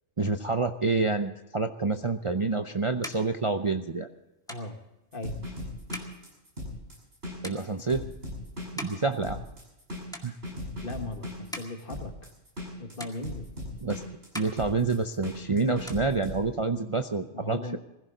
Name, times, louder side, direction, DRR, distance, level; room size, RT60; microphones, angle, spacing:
voice 1, 0.2-4.1 7.4-8.0 8.8-9.4 10.2-10.4 13.8-14.0 14.3-17.8, right 3 dB, 30° right, 6 dB, 0.6 m, -28 dB
sound 1, 2.2-9.8 10.1-10.8 11.2-12.7 13.0-13.9 14.2-15.4 15.7-16.8, equal, 5° left, 1.9 m, -45 dB
voice 2, 4.5-4.8 5.1-5.4 10.8-12.3 12.8-13.5 17.3-17.8, left 2 dB, 45° left, 6 dB, 1.8 m, -38 dB
sound 2, 5.1-16.4, left 1 dB, 50° right, 7.0 m, -38 dB
21.5 x 15.5 x 3.9 m, 0.95 s
omnidirectional pair, 1.3 m